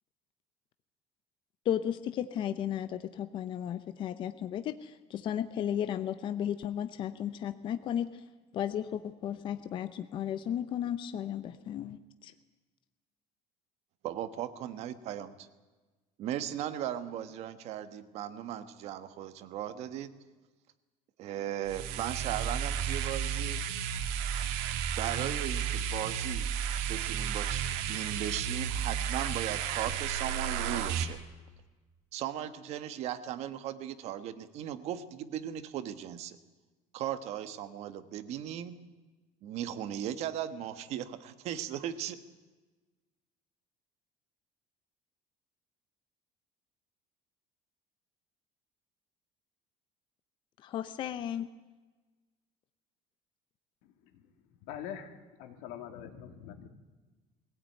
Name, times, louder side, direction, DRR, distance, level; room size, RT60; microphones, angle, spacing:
voice 1, 1.7-8.1 8.5-12.3 50.6-51.5, left 10 dB, 35° left, 11 dB, 0.8 m, -34 dB
voice 2, 14.0-15.5 16.2-20.1 21.2-23.6 25.0-26.5 26.9-31.2 32.1-36.4 36.9-38.8 39.4-42.2, right 11 dB, 50° right, 11 dB, 1.4 m, -37 dB
sound 1, 21.7-31.0, right 8 dB, 85° right, 2.1 m, -33 dB
voice 3, 54.6-56.7, left 9 dB, 85° left, 6 dB, 2.9 m, -43 dB
22.0 x 16.5 x 9.3 m, 1.3 s
cardioid pair, 180°, 14 cm